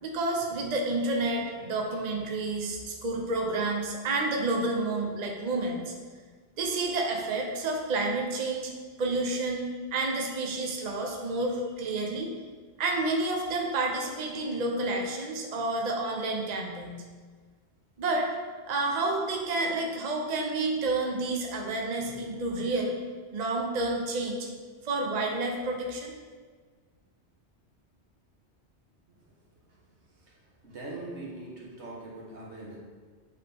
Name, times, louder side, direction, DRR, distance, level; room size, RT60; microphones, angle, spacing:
voice 1, 0.0-5.9 6.6-8.7 9.0-12.3 12.8-17.0 18.0-18.3 18.7-23.0 23.3-24.5 24.8-26.1, right 2 dB, 45° right, 1 dB, 0.8 m, -30 dB
voice 2, 30.6-32.8, right 2 dB, 85° right, -3 dB, 1.6 m, -42 dB
7.9 x 3.7 x 3.5 m, 1.5 s
omnidirectional pair, 1.1 m